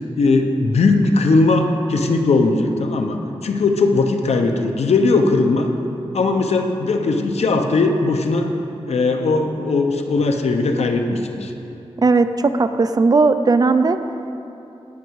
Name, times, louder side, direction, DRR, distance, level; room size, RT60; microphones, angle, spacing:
voice 1, 0.2-5.7 6.1-8.5 8.9-11.5, left 3 dB, 80° left, 5 dB, 0.9 m, -18 dB
voice 2, 12.0-14.0, right 3 dB, 40° right, 10 dB, 0.4 m, -16 dB
17.5 x 6.2 x 4.7 m, 2.9 s
wide cardioid pair, 130°, 11 cm